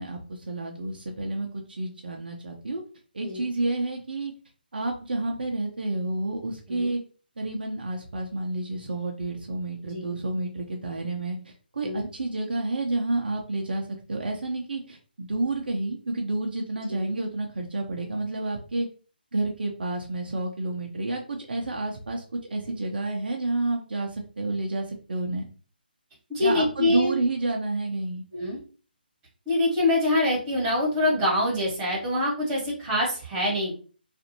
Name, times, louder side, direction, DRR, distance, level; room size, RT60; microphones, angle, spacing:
voice 1, 0.0-2.8 3.1-4.3 4.7-7.0 7.4-18.9 19.3-22.2 22.5-25.4 26.4-28.2, right 2 dB, 65° right, 1 dB, 0.6 m, -30 dB
voice 2, 9.8-10.2 11.8-12.1 16.9-17.1 26.3-27.1 28.3-28.6 29.4-33.8, left 1 dB, 15° right, -4 dB, 1.3 m, -25 dB
2.6 x 2.5 x 2.7 m, 0.38 s
figure-of-eight pair, 145°, 6 cm